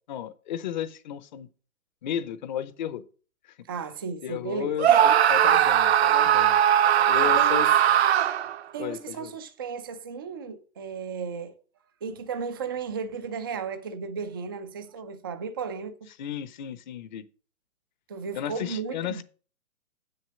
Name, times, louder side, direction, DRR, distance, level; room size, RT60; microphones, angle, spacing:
voice 1, 0.1-1.5 2.0-3.0 3.4-3.5 4.2-7.7 8.8-9.3 16.2-17.3 18.3-19.2, left 10 dB, 35° left, 0.8 m, -34 dB
voice 2, 3.7-5.0 6.8-7.7 8.7-11.6 12.0-16.1 18.1-19.2, right 5 dB, 15° right, 0.4 m, -34 dB
Screaming, 4.8-8.6, right 10 dB, 50° right, 0.9 m, -19 dB
8.0 x 6.6 x 6.2 m
hypercardioid pair, 140°, 42 cm